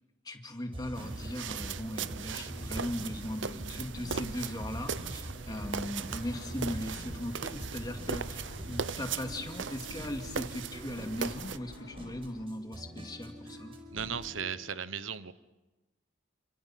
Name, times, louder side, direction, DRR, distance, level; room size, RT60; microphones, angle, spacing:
voice 1, 0.2-13.7, left 1 dB, 20° left, 4 dB, 2.3 m, -38 dB
sound 1, 0.7-14.4, equal, 30° right, 5.2 m, -44 dB
sound 2, 0.9-11.6, right 6 dB, 70° right, 0.8 m, -39 dB
Fixed-wing aircraft airplane, 3.6-12.4, left 1 dB, 55° left, 2.3 m, -51 dB
voice 2, 13.9-15.3, right 7 dB, 90° right, 14 dB, 1.1 m, -36 dB
29.5 x 27.5 x 6.0 m, 1.1 s
head